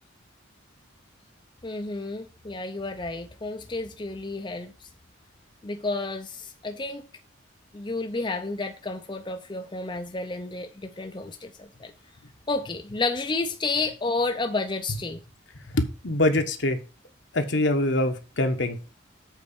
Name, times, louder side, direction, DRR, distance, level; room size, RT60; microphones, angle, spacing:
voice 1, 1.6-4.9 5.6-7.1 7.7-11.9 12.5-15.2, left 3 dB, 25° left, 0.6 m, -31 dB
voice 2, 15.7-16.8 17.3-18.8, left 1 dB, 65° left, 1.3 m, -24 dB
8.2 x 4.3 x 6.9 m
head